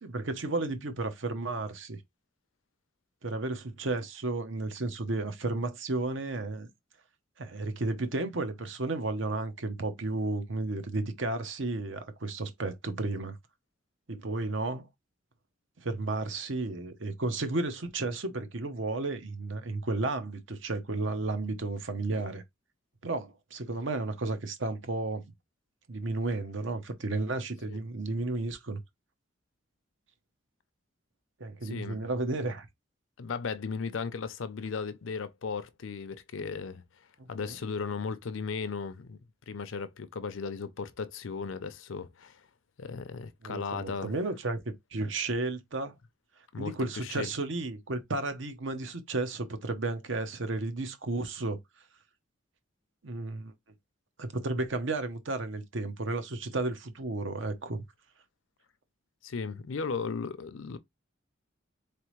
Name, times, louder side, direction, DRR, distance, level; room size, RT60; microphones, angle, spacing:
voice 1, 0.0-2.0 3.2-6.7 7.4-13.4 14.1-14.9 15.8-22.4 23.0-25.2 25.9-28.8 31.4-32.7 37.2-37.6 43.4-45.9 46.6-51.6 53.0-53.5 54.2-57.8, right 2 dB, 70° right, 0.9 m, -33 dB
voice 2, 31.6-32.1 33.2-36.8 37.3-39.2 39.5-42.4 42.8-44.1 46.5-47.3 59.2-60.8, left 5 dB, 75° left, 0.5 m, -36 dB
4.1 x 3.3 x 3.1 m
head